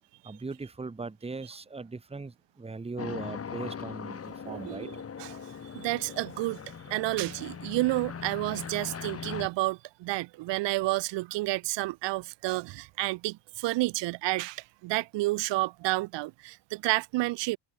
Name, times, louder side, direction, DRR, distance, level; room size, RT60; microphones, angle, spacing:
voice 1, 0.2-4.9, right 3 dB, 15° right, 1.9 m, -39 dB
sound 1, 3.0-9.5, left 7 dB, 30° left, 3.7 m, -40 dB
voice 2, 4.5-5.4 5.7-6.6 6.9-17.6, right 19 dB, 75° right, 1.9 m, -30 dB
cardioid pair, 105°, 43 cm